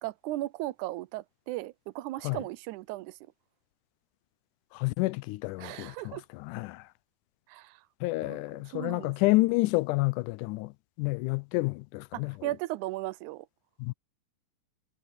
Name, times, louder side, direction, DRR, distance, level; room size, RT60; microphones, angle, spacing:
voice 1, 0.0-3.2 5.6-6.2 7.5-7.8 8.2-9.1 12.1-13.5, right 17 dB, 80° right, 1.9 m, -37 dB
voice 2, 4.7-6.9 8.0-12.5 13.8-13.9, left 22 dB, 85° left, 2.1 m, -29 dB
omnidirectional pair, 3.6 m